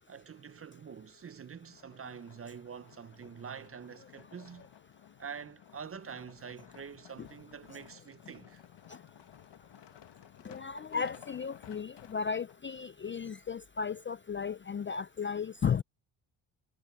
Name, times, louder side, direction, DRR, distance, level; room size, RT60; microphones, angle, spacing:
voice 1, 0.1-4.7 5.2-8.6, right 6 dB, 30° right, 0.6 m, -46 dB
sound 1, 1.6-12.6 13.2-13.3, left 10 dB, 60° left, 1.7 m, -56 dB
voice 2, 10.4-15.8, left 6 dB, 25° left, 0.4 m, -35 dB
cardioid pair, 100°, 49 cm